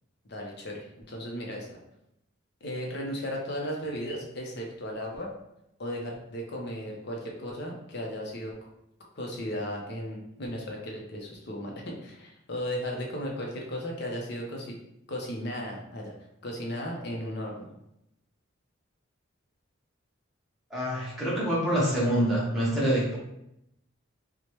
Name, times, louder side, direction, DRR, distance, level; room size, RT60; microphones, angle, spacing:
voice 1, 0.3-1.8 2.6-5.3 5.8-8.5 9.1-14.8 15.1-16.1 16.4-17.7, equal, 55° left, -1 dB, 0.6 m, -35 dB
voice 2, 20.7-23.2, equal, ahead, -8 dB, 0.9 m, -26 dB
3.1 x 2.1 x 2.9 m, 0.81 s
head